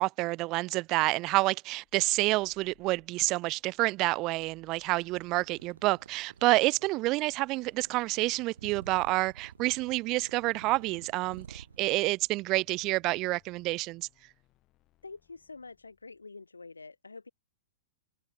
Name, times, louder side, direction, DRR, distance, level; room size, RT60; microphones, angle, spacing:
voice 1, 0.0-14.1, right 21 dB, 35° right, 0.3 m, -28 dB
sound 1, 1.8-16.4, left 17 dB, 35° left, 6.1 m, -69 dB
sound 2, 5.0-12.0, right 7 dB, 70° right, 3.9 m, -51 dB
voice 2, 15.0-17.3, left 4 dB, 80° left, 1.8 m, -47 dB
open air
figure-of-eight pair, 105°, 0 cm